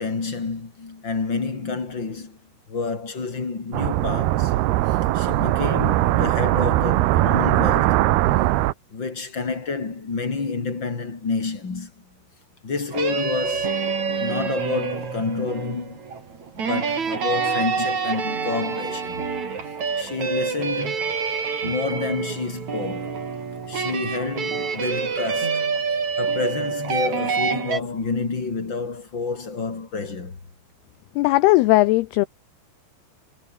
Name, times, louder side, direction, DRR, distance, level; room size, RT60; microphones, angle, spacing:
voice 1, 0.0-2.4 2.7-4.6 4.9-8.0 8.9-12.0 12.6-16.0 16.5-19.2 20.0-21.1 21.6-23.2 23.7-25.6 26.2-30.4, left 4 dB, 25° left, 3.9 m, -29 dB
sound 1, 3.7-8.7, right 16 dB, 70° right, 2.7 m, -20 dB
sound 2, 12.9-27.8, right 5 dB, 40° right, 5.0 m, -27 dB
voice 2, 31.2-32.3, left 19 dB, 80° left, 2.3 m, -17 dB
omnidirectional pair, 5.3 m